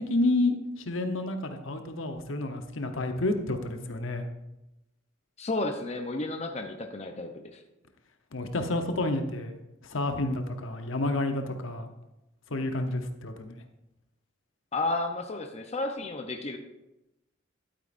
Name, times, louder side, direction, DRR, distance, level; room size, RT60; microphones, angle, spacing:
voice 1, 0.0-4.2 8.3-9.6 9.8-11.9 12.5-13.6, left 2 dB, 75° left, 6 dB, 0.9 m, -30 dB
voice 2, 5.4-7.6 14.7-16.6, left 2 dB, 35° left, 4 dB, 0.7 m, -32 dB
12.0 x 9.1 x 2.6 m, 0.92 s
head